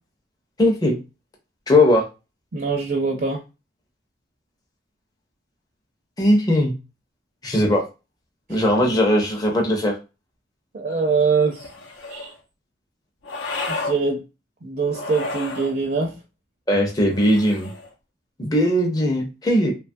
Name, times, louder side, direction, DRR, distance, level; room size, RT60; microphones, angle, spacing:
voice 1, 0.6-1.0 1.7-2.1 6.2-6.7 7.4-7.8 8.5-10.0 16.7-17.7 18.4-19.7, left 1 dB, 20° left, 1 dB, 0.5 m, -19 dB
voice 2, 2.5-3.4 8.5-8.6 10.7-11.7 12.1-12.3 13.7-14.2 14.6-16.2, right 4 dB, 45° right, 2 dB, 0.4 m, -23 dB
sound 1, 11.5-12.3 13.2-14.0 14.9-15.7 17.1-17.9, left 3 dB, 80° left, 0.6 m, -32 dB
2.9 x 2.2 x 2.5 m, 0.28 s
head